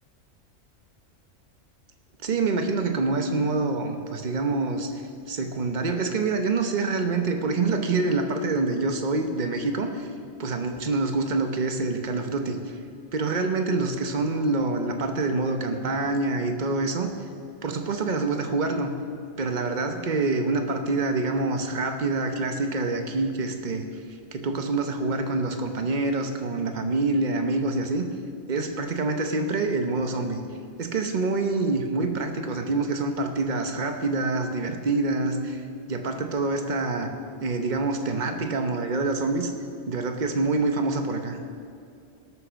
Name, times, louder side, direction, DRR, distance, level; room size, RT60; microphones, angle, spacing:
voice 1, 2.2-4.9 5.3-10.1 10.4-12.6 13.1-17.1 17.6-18.9 19.4-23.9 24.3-28.1 28.5-30.4 30.8-35.6 35.9-37.1 37.4-39.5 39.9-41.4, right 3 dB, 40° right, 5 dB, 1.0 m, -26 dB
17.5 x 6.6 x 6.3 m, 2.3 s
omnidirectional pair, 1.4 m